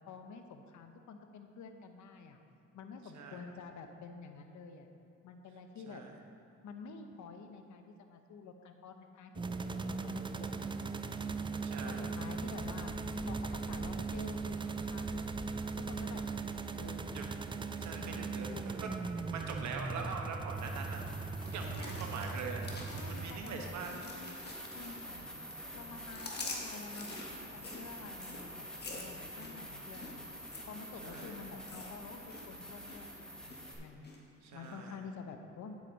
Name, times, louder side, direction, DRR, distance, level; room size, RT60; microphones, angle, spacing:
voice 1, 0.1-2.4 2.7-4.9 5.2-6.0 6.6-9.3 9.6-11.4 11.8-12.9 13.2-15.2 15.8-16.2 16.7-17.3 17.9-18.6 21.6-22.0 22.9-25.3 25.7-30.3 30.7-34.1 34.5-35.8, left 5 dB, 70° left, 6 dB, 0.9 m, -49 dB
sound 1, 9.4-23.9, right 4 dB, 15° right, 0.4 m, -39 dB
voice 2, 11.6-12.1 17.1-17.2 17.8-18.5 18.8-18.9 19.3-21.0 21.4-23.9 31.0-31.4 34.4-35.0, right 5 dB, 70° right, 2 dB, 1.1 m, -43 dB
sound 2, 20.5-33.7, equal, 5° left, 1.9 m, -47 dB
sound 3, 21.4-25.2 25.5-32.5 32.7-33.1 33.5-34.2 34.6-34.7, left 3 dB, 35° left, 1.6 m, -47 dB
9.3 x 8.2 x 4.0 m, 2.8 s
cardioid pair, 90°, 30 cm